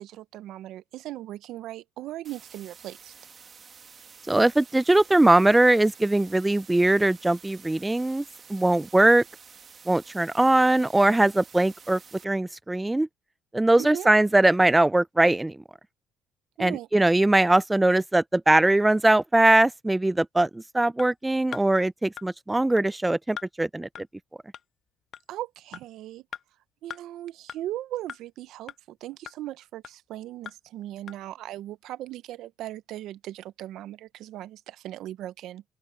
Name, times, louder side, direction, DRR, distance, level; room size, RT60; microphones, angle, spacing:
voice 1, 0.0-3.1 13.8-14.1 16.6-16.9 25.3-26.2 26.8-35.6, right 14 dB, 75° right, 0.8 m, -38 dB
sound 1, 2.2-12.2, right 6 dB, 40° right, 1.8 m, -50 dB
voice 2, 4.3-8.2 8.5-9.2 9.9-13.1 13.5-15.6 16.6-23.9, right 2 dB, 10° right, 0.5 m, -21 dB
sound 2, 21.0-21.1 21.5-21.7 22.2-22.3 22.8-22.9 23.4-23.5 24.0-24.1 24.5-24.6 25.1-25.2 25.7-25.8 26.3-26.4 26.9-27.0 27.5-27.6 28.1-28.2 28.7-28.8 29.3-29.4 29.8-29.9 30.5-30.6 31.1-31.2, left 8 dB, 55° left, 0.6 m, -39 dB
open air
supercardioid pair, 80°, 0 cm